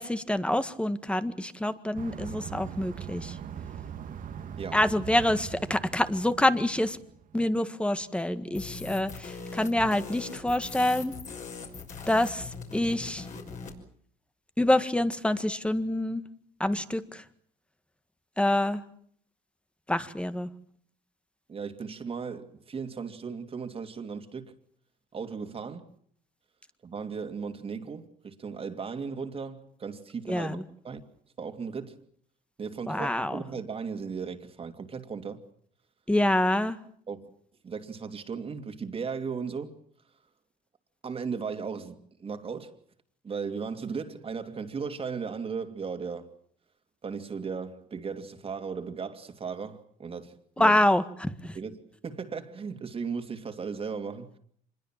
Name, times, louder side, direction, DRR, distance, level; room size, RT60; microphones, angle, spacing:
voice 1, 0.0-3.4 4.7-7.0 7.3-11.1 12.1-13.3 14.6-16.2 16.6-17.2 18.4-18.8 19.9-20.5 30.3-30.6 32.9-33.4 36.1-36.8 50.6-51.6, left 1 dB, 5° left, 1.7 m, -26 dB
sound 1, 1.9-7.4, right 8 dB, 55° right, 1.8 m, -41 dB
sound 2, 8.5-13.8, left 4 dB, 45° left, 5.9 m, -41 dB
voice 2, 21.5-24.5 25.1-25.9 26.8-30.6 30.8-31.0 31.4-32.0 32.6-35.4 37.1-37.3 37.6-39.7 41.0-42.7 43.2-46.3 47.0-50.8 51.5-54.4, right 5 dB, 35° right, 2.7 m, -36 dB
26.0 x 21.5 x 7.5 m
cardioid pair, 110°, 17 cm